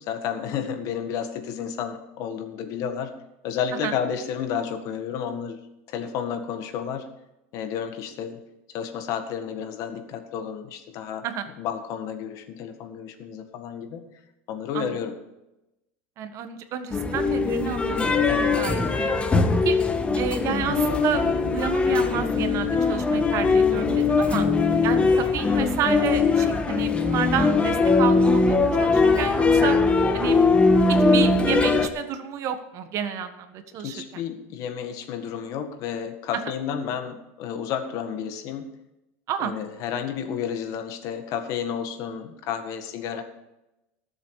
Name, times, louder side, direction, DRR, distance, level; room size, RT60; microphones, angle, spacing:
voice 1, 0.0-3.1 3.4-5.6 5.9-7.1 7.5-11.2 11.6-14.1 14.5-15.2 18.3-18.6 24.7-24.9 33.8-38.7 39.4-43.2, left 8 dB, 55° left, 7 dB, 1.8 m, -31 dB
voice 2, 16.2-19.1 19.6-19.8 20.2-21.2 21.5-24.5 24.8-29.8 30.1-30.4 30.9-34.2 39.3-39.5, right 8 dB, 50° right, 8 dB, 1.5 m, -30 dB
sound 1, 16.9-31.9, left 4 dB, 15° left, 1.3 m, -21 dB
19.0 x 7.3 x 4.9 m, 0.93 s
supercardioid pair, 120°, 7 cm